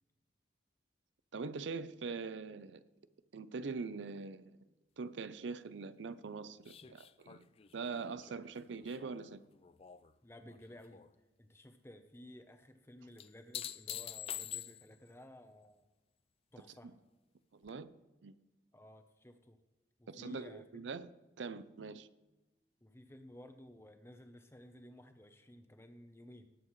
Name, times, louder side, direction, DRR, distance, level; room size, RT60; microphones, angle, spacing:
voice 1, 1.3-2.8 3.3-4.6 5.0-7.4 7.7-9.4 16.8-16.9 17.5-17.9 18.2-18.3 20.1-21.1 21.4-22.1, right 4 dB, 80° right, 0.5 m, -43 dB
sound 1, 6.7-10.1 10.5-11.1 13.2-15.1 17.7-17.8, left 10 dB, 30° left, 0.3 m, -46 dB
voice 2, 10.2-11.1 11.4-15.8 16.5-16.9 18.7-19.6 20.0-20.8 22.8-26.5, left 1 dB, 15° left, 0.8 m, -55 dB
19.0 x 7.9 x 3.2 m
head